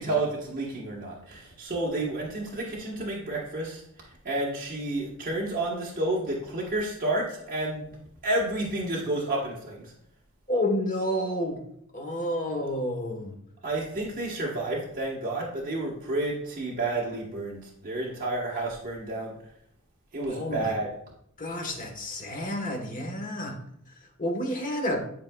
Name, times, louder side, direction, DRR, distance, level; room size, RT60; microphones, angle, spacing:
voice 1, 0.0-3.8 4.2-7.8 8.2-9.9 13.6-19.3 20.1-20.9, right 2 dB, 40° right, -4 dB, 1.2 m, -30 dB
voice 2, 10.5-11.6 11.9-13.4 18.5-18.7 20.3-20.7 21.4-23.6 24.2-25.0, left 1 dB, 35° left, 3 dB, 1.2 m, -30 dB
10.5 x 4.6 x 2.3 m, 0.70 s
head